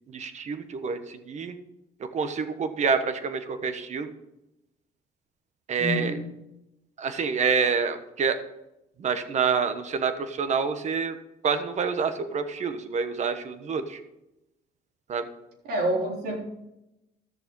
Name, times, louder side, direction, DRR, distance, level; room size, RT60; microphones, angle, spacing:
voice 1, 0.1-1.5 2.1-4.1 5.7-6.1 7.0-8.4 9.0-11.2 11.4-14.0 15.1-15.2, right 5 dB, 45° right, 9 dB, 1.3 m, -27 dB
voice 2, 5.8-6.3 15.6-16.4, equal, 70° right, -1 dB, 3.8 m, -27 dB
13.5 x 6.9 x 5.4 m, 0.91 s
cardioid pair, 110°, 17 cm